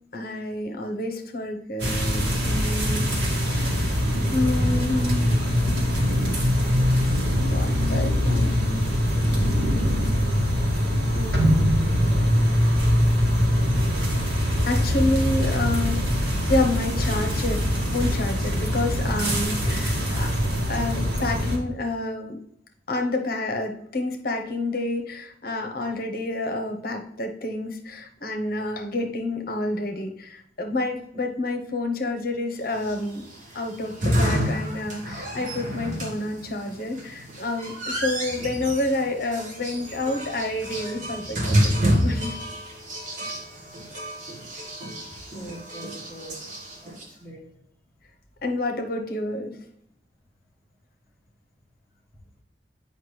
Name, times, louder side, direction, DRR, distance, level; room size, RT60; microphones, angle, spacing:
voice 1, 0.1-4.0 4.3-5.3 7.4-8.8 11.1-11.9 14.7-16.2 16.5-20.3 20.7-22.4 22.9-33.3 33.5-42.4 43.2-43.3 48.4-49.6, left 2 dB, 55° left, 1.0 m, -29 dB
sound 1, 1.8-21.6, equal, 80° right, 1.8 m, -23 dB
sound 2, 32.7-47.0, equal, 45° right, 1.3 m, -29 dB
voice 2, 45.1-46.5 46.8-47.5, right 1 dB, 10° left, 1.1 m, -42 dB
8.0 x 5.3 x 3.2 m
head